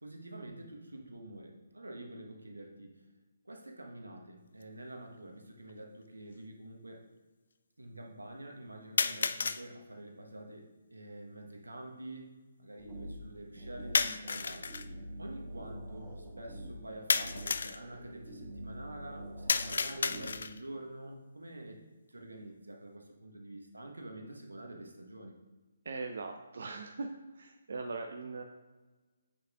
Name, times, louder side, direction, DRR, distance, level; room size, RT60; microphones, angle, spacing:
voice 1, 0.0-3.0 3.4-7.0 7.8-14.7 15.2-21.8 22.1-25.3, right 1 dB, 80° right, 2 dB, 1.2 m, -47 dB
sound 1, 4.6-4.7 5.7-5.8 9.0-9.6 13.9-14.9 17.1-17.8 19.5-20.7, left 4 dB, 60° left, 0.3 m, -31 dB
sound 2, 12.8-20.5, right 1 dB, ahead, 1.8 m, -46 dB
voice 2, 25.8-28.4, right 3 dB, 60° right, 4 dB, 0.5 m, -40 dB
8.0 x 6.4 x 2.5 m, 1.2 s
figure-of-eight pair, 140°, 0 cm